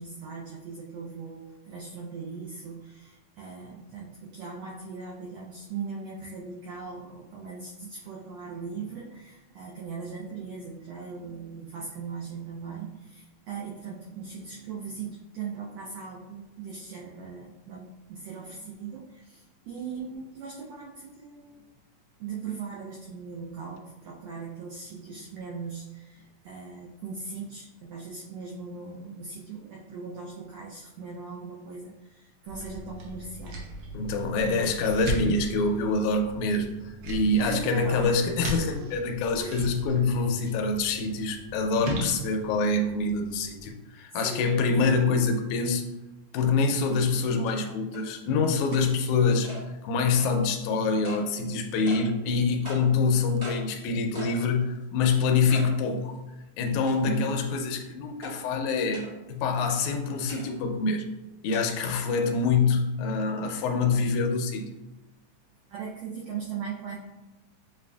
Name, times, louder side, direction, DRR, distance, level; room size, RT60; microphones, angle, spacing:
voice 1, 0.0-21.7 22.2-34.7 35.1-35.2 37.4-38.3 38.8-38.9 39.4-39.6 44.1-44.4 44.8-45.0 57.1-57.4 61.8-61.9 63.6-63.7 65.7-67.0, right 5 dB, 90° right, -3 dB, 1.4 m, -39 dB
sound 1, 32.5-43.7, right 1 dB, 70° right, 1.9 m, -38 dB
voice 2, 33.9-45.9 46.3-49.5 49.8-56.1 56.6-61.1 61.4-64.7, left 4 dB, 80° left, 3 dB, 1.9 m, -25 dB
sound 2, 46.7-46.8 47.5-47.6 47.9-48.0 48.7-48.9 49.4-49.6 50.1-50.3 51.0-51.2 51.9-52.0 52.6-52.8 53.4-53.6 54.1-54.4 54.8-54.9 55.5-55.7 56.1-56.2 56.9-57.3 58.2-58.3 58.9-59.1 60.3-60.5 61.5-61.6, equal, 35° right, 1.0 m, -40 dB
7.1 x 2.5 x 2.2 m, 1.0 s
omnidirectional pair, 3.5 m